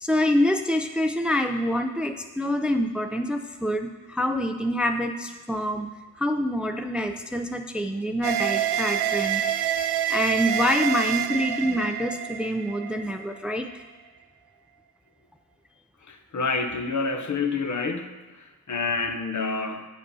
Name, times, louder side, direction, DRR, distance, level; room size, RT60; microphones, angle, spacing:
voice 1, 0.0-5.9 6.2-9.4 10.1-13.8, left 1 dB, 5° right, 6 dB, 0.6 m, -26 dB
sound 1, 8.2-13.6, right 10 dB, 85° right, 0.5 m, -27 dB
voice 2, 16.1-19.9, left 4 dB, 50° left, 6 dB, 1.0 m, -28 dB
8.6 x 6.4 x 5.5 m, 1.3 s
cardioid pair, 75°, 39 cm